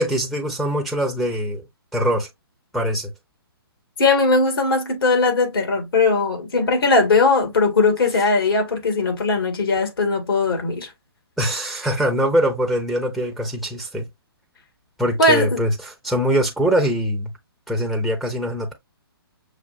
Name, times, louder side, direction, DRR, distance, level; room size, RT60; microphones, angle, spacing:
voice 1, 0.0-1.7 1.9-2.3 2.7-3.1 11.4-14.1 15.0-17.3 17.7-18.7, equal, ahead, 0.8 m, -22 dB
voice 2, 4.0-10.9 15.2-15.6, left 3 dB, 65° left, 2.1 m, -19 dB
6.5 x 2.5 x 2.5 m
hypercardioid pair, 140°, 13 cm